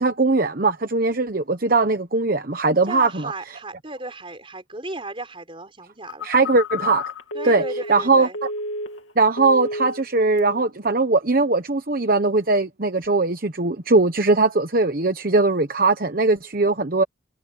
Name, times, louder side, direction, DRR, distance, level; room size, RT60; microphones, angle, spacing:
voice 1, 0.0-3.3 6.2-7.1 7.4-7.6 7.9-8.5 9.2-17.0, right 3 dB, 45° right, 1.1 m, -20 dB
voice 2, 2.9-6.3 7.3-8.4, right 2 dB, 30° right, 4.8 m, -34 dB
Telephone, 6.1-9.1 9.4-10.0 10.4-10.7, left 2 dB, 85° left, 2.8 m, -31 dB
head